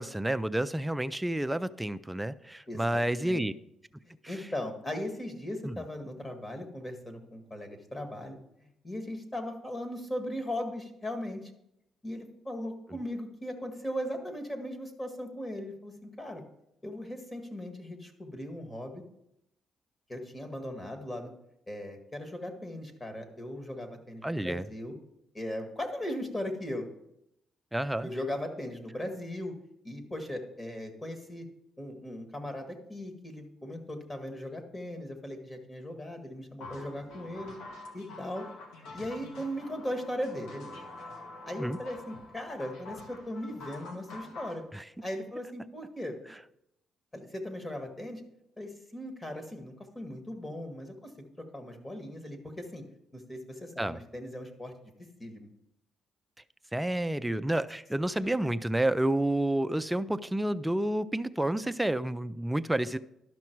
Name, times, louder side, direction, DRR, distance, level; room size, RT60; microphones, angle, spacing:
voice 1, 0.0-3.5 4.2-4.4 5.6-5.8 24.2-24.7 27.7-28.1 41.6-41.8 44.7-44.8 53.8-54.0 56.7-63.0, right 1 dB, 10° right, 13 dB, 0.4 m, -30 dB
voice 2, 2.7-3.5 4.1-11.5 12.0-16.4 16.8-19.0 20.1-21.3 21.7-24.9 25.3-26.9 28.0-29.5 29.8-31.5 31.8-37.6 37.9-38.5 38.9-40.9 41.5-44.6 45.0-46.2 47.1-48.2 48.6-52.8 53.1-54.7 55.2-55.5 58.1-58.2, left 1 dB, 20° left, 5 dB, 1.8 m, -38 dB
sound 1, 36.6-44.6, left 2 dB, 90° left, 1.4 m, -46 dB
11.5 x 6.0 x 4.6 m, 0.80 s
cardioid pair, 90°, 0 cm